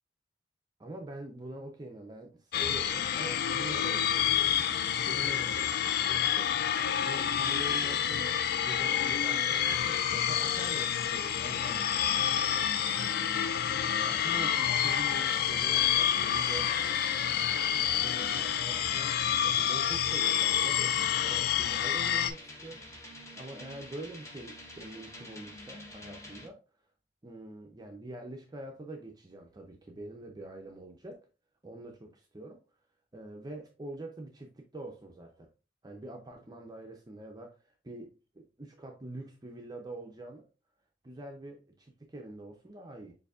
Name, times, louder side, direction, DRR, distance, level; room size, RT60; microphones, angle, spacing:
voice 1, 0.8-11.8 13.9-16.7 17.9-19.1 19.4-22.8 23.3-26.6 27.2-31.1 31.6-32.6 33.1-35.5 35.8-38.1 38.3-40.4 41.0-43.1, right 1 dB, 20° right, 2 dB, 0.5 m, -45 dB
sound 1, 2.5-22.3, left 9 dB, 60° left, 0.3 m, -28 dB
sound 2, 9.6-26.5, left 1 dB, 15° left, 0.9 m, -47 dB
6.7 x 2.6 x 2.4 m, 0.33 s
head